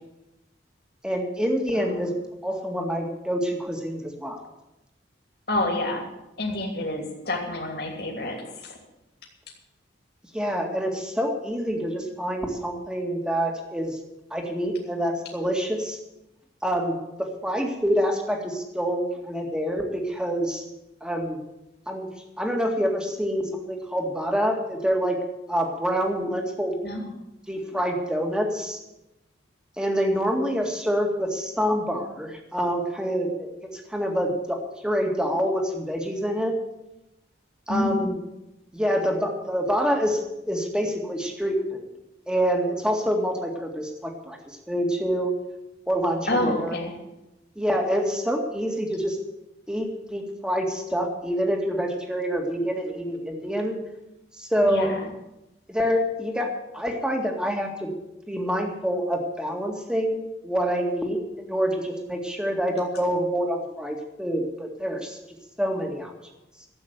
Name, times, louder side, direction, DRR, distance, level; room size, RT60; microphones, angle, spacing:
voice 1, 1.0-2.2 2.4-4.5 10.3-14.0 14.3-16.0 16.6-20.6 21.0-21.4 21.9-22.1 22.4-25.2 25.5-26.8 27.5-28.8 29.8-36.5 37.7-38.2 38.7-40.2 40.5-41.8 42.3-45.3 45.9-46.8 47.6-49.2 49.7-53.8 54.4-54.9 55.7-56.5 56.7-57.9 58.3-61.2 61.5-65.2 65.6-66.1, equal, 5° right, 3 dB, 2.0 m, -26 dB
voice 2, 5.5-6.0 6.4-8.7 26.8-27.0 37.7-38.1 46.3-46.9 54.6-55.0, left 1 dB, 60° left, 0 dB, 2.8 m, -28 dB
12.5 x 8.4 x 9.3 m, 0.93 s
head